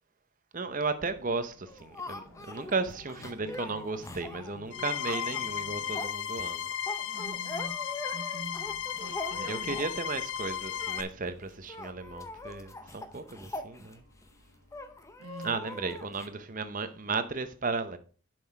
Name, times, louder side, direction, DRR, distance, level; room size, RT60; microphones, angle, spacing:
voice 1, 0.5-6.7 9.3-14.0 15.4-18.0, right 4 dB, 35° right, 0.7 m, -35 dB
sound 1, 0.9-17.1, left 2 dB, 75° left, 1.1 m, -57 dB
sound 2, 1.7-10.1 10.7-11.0 11.3-11.4 11.6-14.3 14.7-16.3, left 2 dB, 15° left, 0.7 m, -42 dB
sound 3, 4.7-11.0, left 9 dB, 55° left, 0.5 m, -35 dB
voice 2, 7.1-10.0 15.2-15.6, right 3 dB, 75° right, 0.6 m, -45 dB
7.5 x 5.7 x 4.8 m
head